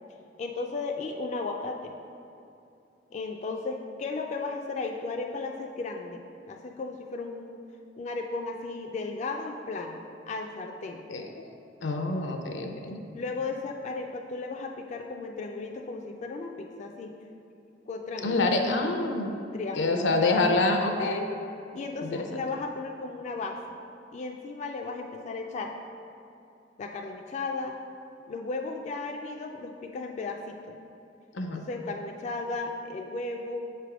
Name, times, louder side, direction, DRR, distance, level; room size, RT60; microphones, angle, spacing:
voice 1, 0.4-1.9 3.1-6.2 6.5-7.6 8.0-11.0 13.1-17.1 17.9-18.4 19.5-20.1 21.7-23.6 24.1-25.7 26.8-27.8 28.3-30.8 31.6-33.6, left 3 dB, 40° left, 2 dB, 0.3 m, -35 dB
voice 2, 11.8-13.0 18.2-19.4 19.8-21.3 22.0-22.2 31.3-31.6, left 2 dB, 80° left, 4 dB, 0.6 m, -26 dB
6.5 x 3.4 x 4.9 m, 2.7 s
head